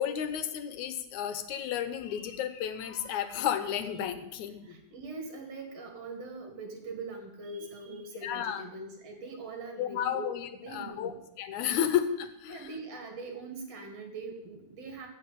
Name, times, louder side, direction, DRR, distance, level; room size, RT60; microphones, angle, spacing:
voice 1, 0.0-4.8 8.2-8.6 9.8-12.7, left 9 dB, 80° left, 10 dB, 2.3 m, -32 dB
voice 2, 4.6-11.2 12.5-15.1, right 3 dB, 60° right, 4 dB, 2.9 m, -42 dB
16.0 x 5.6 x 8.3 m, 0.84 s
omnidirectional pair, 3.4 m